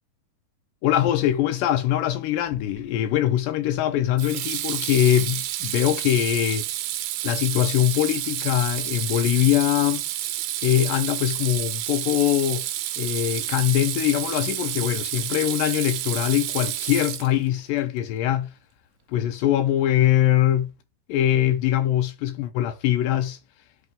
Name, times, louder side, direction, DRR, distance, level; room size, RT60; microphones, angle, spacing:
voice 1, 0.8-6.7 7.2-10.0 10.6-12.7 13.0-18.5 19.1-20.7 21.1-23.4, left 12 dB, 80° left, 2.2 m, -22 dB
Water tap faucet / Sink (filling or washing), 2.5-2.9 4.2-17.6, right 14 dB, 85° right, 2.3 m, -30 dB
10.5 x 3.6 x 3.5 m
omnidirectional pair, 4.0 m